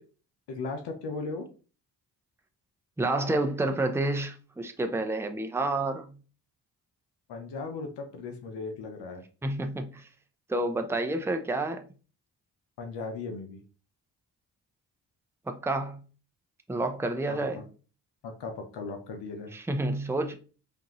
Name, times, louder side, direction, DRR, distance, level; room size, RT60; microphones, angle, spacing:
voice 1, 0.5-1.5 7.3-9.2 12.8-13.6 17.3-17.5 18.2-19.5, left 3 dB, 75° left, 0.8 m, -37 dB
voice 2, 3.0-6.2 9.4-10.1 10.5-11.9 15.5-16.0 16.7-17.7 19.5-20.4, right 2 dB, 5° right, 0.6 m, -29 dB
5.1 x 2.6 x 3.0 m
supercardioid pair, 55°, 42 cm